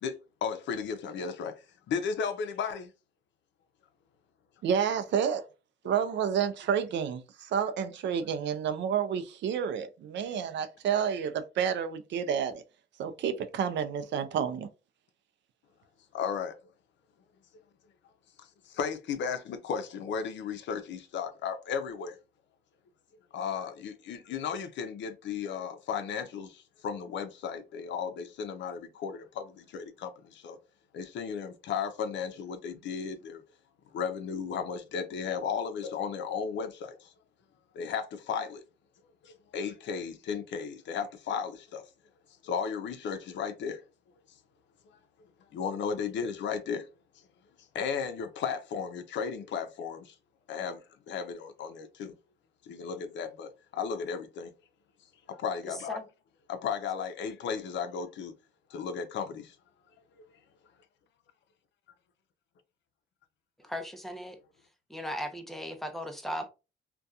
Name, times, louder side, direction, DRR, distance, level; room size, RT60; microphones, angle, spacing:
voice 1, 0.0-2.9 16.1-16.6 18.7-22.2 23.3-30.6 30.9-33.4 33.9-37.1 37.7-38.6 39.2-41.8 42.4-43.8 45.5-46.9 47.7-50.1 50.5-52.1 52.7-54.5 55.3-56.0 56.5-58.3 58.7-59.6, left 6 dB, 65° left, 0.5 m, -35 dB
voice 2, 4.6-5.4 5.8-12.6 13.0-14.7, right 8 dB, 65° right, 0.4 m, -30 dB
voice 3, 55.7-56.0 63.6-64.4 64.9-66.5, equal, ahead, 0.5 m, -37 dB
2.7 x 2.2 x 2.3 m
cardioid pair, 90°, 20 cm